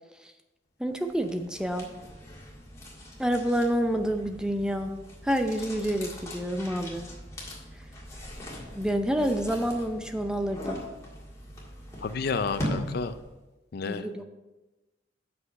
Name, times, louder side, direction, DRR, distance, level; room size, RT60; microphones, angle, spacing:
voice 1, 0.8-1.9 3.2-4.9 5.2-7.0 8.7-10.8 13.9-14.2, equal, 5° right, 6 dB, 0.5 m, -28 dB
sound 1, 1.0-13.4, equal, 15° left, 1.7 m, -40 dB
voice 2, 12.0-13.1 13.7-14.2, left 4 dB, 55° left, 11 dB, 0.4 m, -31 dB
7.7 x 6.1 x 5.4 m, 1.1 s
head